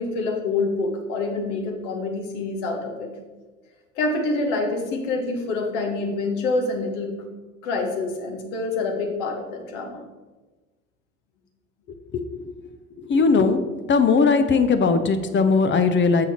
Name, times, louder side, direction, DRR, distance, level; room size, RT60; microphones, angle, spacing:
voice 1, 0.0-3.1 4.0-7.1 7.6-10.0, left 3 dB, 65° left, 2 dB, 1.4 m, -26 dB
voice 2, 12.1-12.5 13.0-13.6 13.9-16.3, left 4 dB, 30° left, 9 dB, 0.6 m, -19 dB
6.9 x 5.6 x 4.3 m, 1.2 s
figure-of-eight pair, 60°, 39 cm